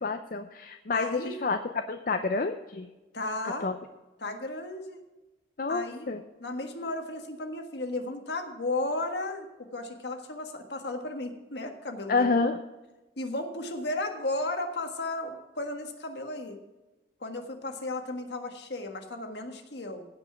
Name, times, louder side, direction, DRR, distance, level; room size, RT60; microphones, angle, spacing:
voice 1, 0.0-1.6 1.9-2.9 3.6-3.7 5.6-6.2 12.1-12.6, left 4 dB, 50° left, 7 dB, 0.6 m, -28 dB
voice 2, 0.9-1.4 3.1-3.7 4.2-5.0 5.7-6.1 6.4-9.5 9.7-12.3 13.2-16.6 17.2-20.0, left 2 dB, 65° left, 5 dB, 1.5 m, -34 dB
16.0 x 5.4 x 5.8 m, 1.1 s
head